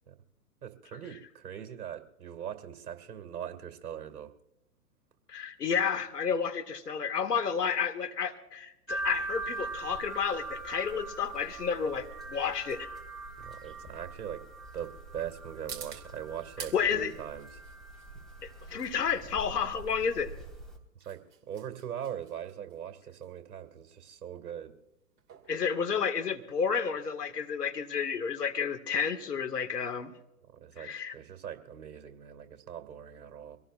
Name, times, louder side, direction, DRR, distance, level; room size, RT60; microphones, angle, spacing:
voice 1, 0.6-4.3 13.4-14.4 14.7-17.6 20.9-21.2 21.5-24.7 30.5-33.6, right 9 dB, 65° right, 8 dB, 2.4 m, -41 dB
voice 2, 5.3-12.9 16.7-17.1 18.4-20.3 25.5-30.1 30.8-31.1, left 6 dB, 75° left, 7 dB, 2.1 m, -31 dB
sound 1, 8.9-20.8, right 2 dB, ahead, 3.3 m, -42 dB
sound 2, 14.8-26.7, right 7 dB, 25° right, 2.5 m, -52 dB
24.5 x 18.0 x 2.5 m, 0.87 s
figure-of-eight pair, 120°, 48 cm